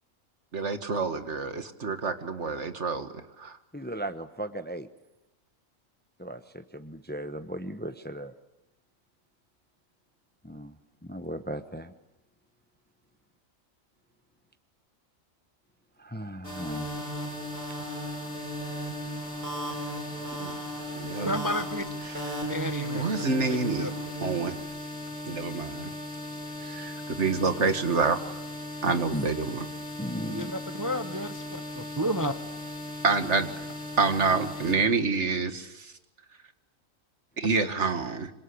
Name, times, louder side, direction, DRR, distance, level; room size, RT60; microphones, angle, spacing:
voice 1, 0.5-3.1 3.4-3.6 20.4-20.5 21.0-21.3 22.0-22.4 22.9-23.9 24.2-24.6 25.3-25.9 26.6-28.2 28.8-29.7 33.0-33.5 34.0-35.9 37.4-38.3, right 4 dB, 60° right, 9 dB, 2.1 m, -27 dB
voice 2, 3.7-4.8 6.2-8.3 10.4-10.7 11.1-11.9 16.0-16.9 28.8-29.3 30.0-30.5, equal, 10° left, 11 dB, 0.9 m, -36 dB
sound 1, 16.4-34.8, left 1 dB, 50° left, 6.4 m, -38 dB
sound 2, 16.4-24.6, right 1 dB, 80° right, 7.4 m, -37 dB
voice 3, 21.2-21.8 22.4-23.0 23.8-23.9 30.3-32.3, equal, 15° right, 10 dB, 0.9 m, -31 dB
26.5 x 26.0 x 8.6 m, 0.91 s
omnidirectional pair, 1.4 m